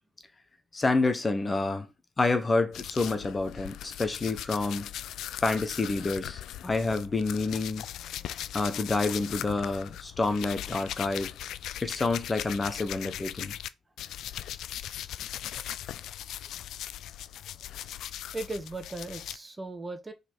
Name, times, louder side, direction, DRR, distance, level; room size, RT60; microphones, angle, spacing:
voice 1, 0.7-1.9 2.2-4.9 5.4-7.9 8.5-11.3 11.8-13.6, left 3 dB, 25° left, 1.0 m, -28 dB
sound 1, 2.7-13.7 14.0-19.4, left 11 dB, 80° left, 0.4 m, -39 dB
voice 2, 18.3-20.1, right 2 dB, 20° right, 1.4 m, -37 dB
5.4 x 4.3 x 6.1 m
cardioid pair, 90°, 0 cm